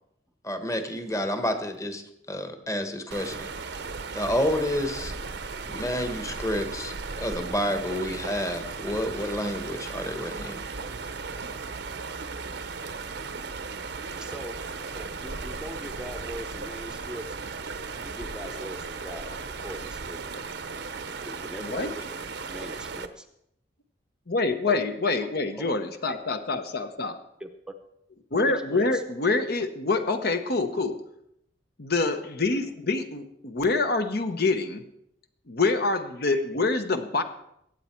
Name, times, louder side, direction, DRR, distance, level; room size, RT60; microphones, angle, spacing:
voice 1, 0.4-3.5 4.1-5.1 5.7-10.6, left 1 dB, 15° left, 8 dB, 1.2 m, -29 dB
sound 1, 3.1-23.1, right 4 dB, 60° right, 0.8 m, -36 dB
voice 2, 11.5-14.6 14.9-17.4 18.0-20.5 21.2-22.0 22.4-23.3 24.7-24.8 25.6-25.7 27.4-27.5 28.4-29.0 32.5-32.6, equal, 5° right, 6 dB, 0.8 m, -42 dB
voice 3, 24.3-27.1 28.3-31.0 31.8-34.8 35.5-37.2, left 3 dB, 55° left, 8 dB, 0.9 m, -26 dB
22.0 x 8.5 x 4.5 m, 0.77 s
head